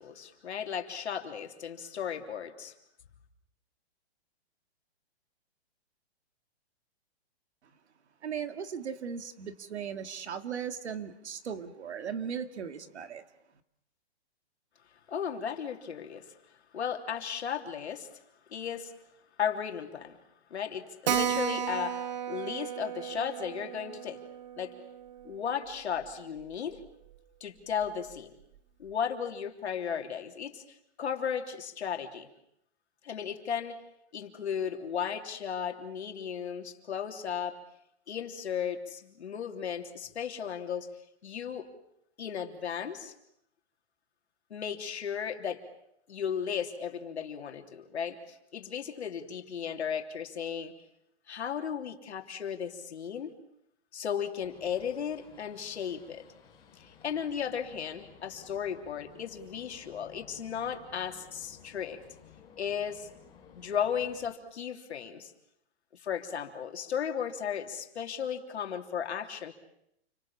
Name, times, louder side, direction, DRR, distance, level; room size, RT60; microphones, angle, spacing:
voice 1, 0.0-2.7 15.1-16.3 16.7-18.1 18.5-18.9 19.4-20.2 20.5-24.2 24.6-24.7 25.2-26.8 27.4-28.3 28.8-30.6 31.0-32.3 33.0-33.8 34.1-37.6 38.1-40.9 41.2-41.7 42.2-43.1 44.5-45.6 46.1-50.7 51.3-53.3 53.9-56.2 56.8-62.0 62.6-63.1 63.5-65.3 65.9-69.5, left 8 dB, 85° left, 4 dB, 3.3 m, -35 dB
voice 2, 8.2-13.2, right 7 dB, 85° right, 9 dB, 2.3 m, -37 dB
Keyboard (musical), 21.1-26.1 26.4-26.5 26.8-26.9 27.1-27.2 27.8-28.1, right 9 dB, 40° right, 1.1 m, -35 dB
sound 1, 54.4-64.3, left 7 dB, 15° left, 3.6 m, -56 dB
29.0 x 24.0 x 7.3 m, 0.79 s
hypercardioid pair, 175°, 33 cm